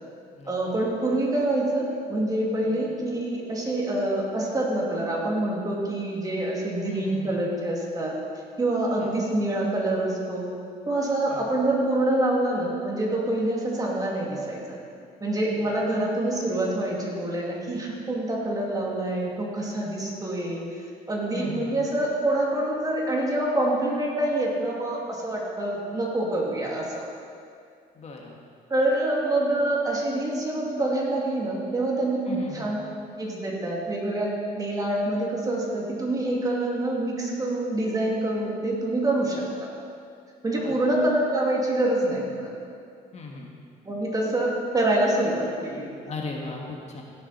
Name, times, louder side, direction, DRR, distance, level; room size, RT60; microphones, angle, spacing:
voice 1, 0.5-8.2 8.6-10.5 10.9-14.8 15.2-20.6 21.1-27.0 28.7-32.8 33.2-39.4 40.4-42.5 43.8-45.9, right 1 dB, 20° right, -3 dB, 2.4 m, -26 dB
voice 2, 6.8-7.4 9.0-9.2 11.3-11.5 15.6-15.8 21.3-21.7 27.9-28.4 32.3-32.7 40.6-40.8 43.1-43.5 46.1-47.0, left 3 dB, 40° left, 0 dB, 1.5 m, -37 dB
16.5 x 7.3 x 4.3 m, 2.3 s
cardioid pair, 110°, 17 cm